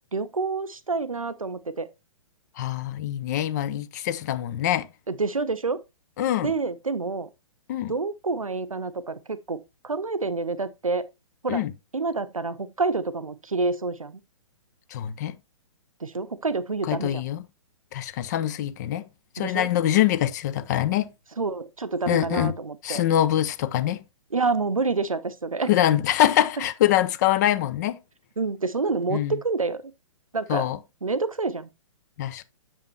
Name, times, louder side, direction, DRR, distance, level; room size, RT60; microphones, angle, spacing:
voice 1, 0.1-1.9 5.1-5.8 6.4-7.3 7.9-9.6 9.8-11.1 11.4-11.6 11.9-14.2 16.0-17.2 19.4-19.7 21.4-23.0 24.3-25.7 28.4-29.8 30.3-30.7 31.0-31.7, right 3 dB, 85° right, 0.6 m, -28 dB
voice 2, 2.6-4.9 6.2-6.5 7.7-7.9 11.5-11.7 14.9-15.4 16.9-17.5 17.9-19.1 19.3-21.1 22.1-22.5 22.8-24.0 25.7-28.0 29.1-29.4 30.5-30.8 32.2-32.4, left 12 dB, 30° left, 0.5 m, -24 dB
7.0 x 5.2 x 3.1 m
figure-of-eight pair, 120°, 17 cm